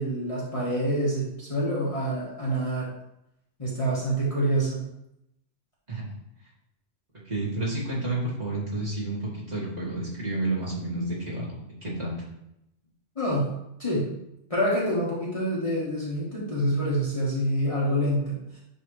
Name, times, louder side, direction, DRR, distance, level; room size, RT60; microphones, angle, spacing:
voice 1, 0.0-2.9 3.6-4.9 13.1-13.5 13.8-14.1 14.5-18.6, right 1 dB, 30° left, -8 dB, 1.5 m, -27 dB
voice 2, 7.3-12.4, right 2 dB, 35° right, -8 dB, 2.2 m, -30 dB
9.2 x 3.3 x 3.2 m, 0.82 s
omnidirectional pair, 1.2 m